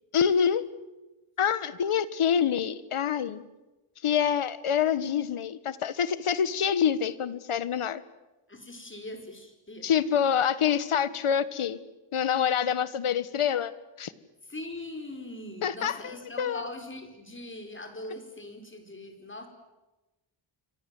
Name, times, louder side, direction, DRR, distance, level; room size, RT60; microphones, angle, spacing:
voice 1, 0.1-0.7 1.4-3.4 4.0-8.0 9.8-11.8 12.1-13.7 14.0-14.1 15.6-16.6, left 8 dB, 80° left, 15 dB, 1.5 m, -26 dB
voice 2, 8.5-9.9 14.4-19.5, left 1 dB, 25° left, 5 dB, 4.9 m, -41 dB
28.5 x 24.5 x 7.8 m, 1.1 s
wide cardioid pair, 125°, 50 cm